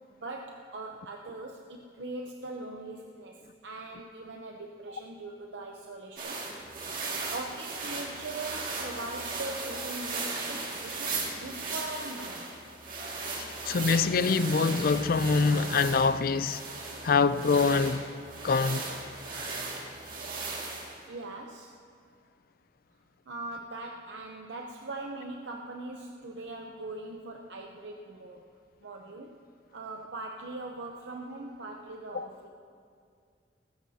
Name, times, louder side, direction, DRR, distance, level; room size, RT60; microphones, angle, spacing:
voice 1, 0.1-6.4 7.3-12.4 21.1-21.7 23.3-28.5 28.8-29.4 29.7-32.5, right 2 dB, 85° right, 0.8 m, -41 dB
sound 1, 6.2-21.0, right 3 dB, 50° right, 2.1 m, -37 dB
voice 2, 13.4-16.6 17.0-18.0 18.4-18.9 32.1-32.3, left 4 dB, 55° left, 0.4 m, -25 dB
20.0 x 16.0 x 2.8 m
head